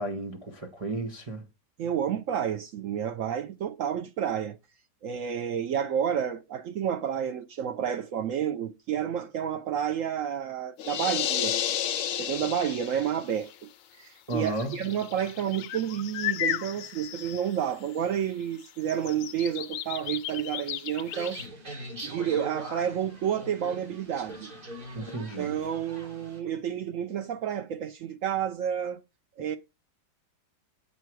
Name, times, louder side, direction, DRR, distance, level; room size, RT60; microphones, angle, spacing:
voice 1, 0.0-1.4 14.3-14.7 24.9-25.5, right 2 dB, 25° right, 0.9 m, -33 dB
voice 2, 1.8-4.6 5.0-11.6 12.1-13.7 14.0-21.4 22.0-24.5 25.4-29.0 29.4-29.6, right 9 dB, 75° right, 0.7 m, -30 dB
sound 1, 10.8-13.3, left 10 dB, 65° left, 0.8 m, -30 dB
sound 2, 13.5-13.6 14.3-18.1 18.4-21.5, left 11 dB, 85° left, 1.3 m, -36 dB
sound 3, 21.0-26.4, right 1 dB, 55° right, 4.5 m, -42 dB
8.2 x 4.6 x 4.6 m
omnidirectional pair, 1.9 m